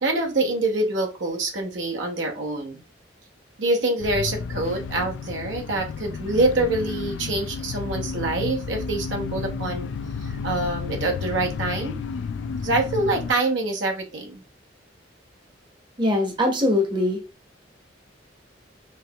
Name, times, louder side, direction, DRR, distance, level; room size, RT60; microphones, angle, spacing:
voice 1, 0.0-2.8 3.6-9.9 10.2-12.0 12.6-14.4, right 2 dB, 85° right, 2 dB, 0.9 m, -25 dB
sound 1, 4.0-13.3, left 5 dB, 75° left, 0.3 m, -32 dB
voice 2, 16.0-17.2, left 1 dB, 25° right, 2 dB, 0.8 m, -22 dB
4.4 x 2.9 x 2.2 m, 0.29 s
head